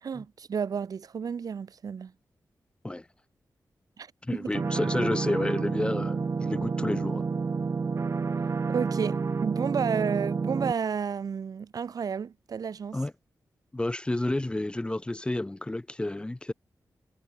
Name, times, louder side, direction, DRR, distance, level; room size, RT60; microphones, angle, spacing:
voice 1, 0.0-2.1 4.0-4.5 8.7-13.0, right 6 dB, 65° right, 1.6 m, -31 dB
voice 2, 4.2-7.2 12.9-13.1 13.7-16.5, left 1 dB, 15° left, 1.2 m, -30 dB
sound 1, 4.5-10.7, right 4 dB, 45° right, 1.5 m, -29 dB
wide cardioid pair, 105°, 7 cm